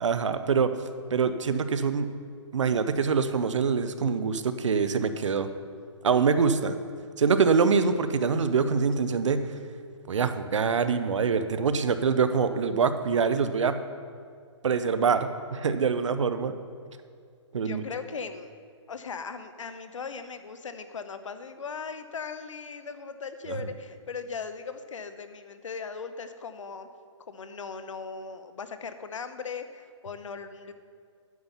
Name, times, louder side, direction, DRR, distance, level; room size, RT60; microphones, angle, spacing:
voice 1, 0.0-0.8 1.1-2.1 2.5-5.5 6.0-6.8 7.2-9.5 10.1-13.8 14.6-16.5 17.5-17.8 23.5-23.6, right 5 dB, 75° right, 11 dB, 0.7 m, -25 dB
voice 2, 17.6-18.5 18.9-26.9 27.3-30.7, left 5 dB, 90° left, 10 dB, 0.8 m, -38 dB
9.5 x 5.5 x 7.1 m, 2.2 s
hypercardioid pair, 170°, 16 cm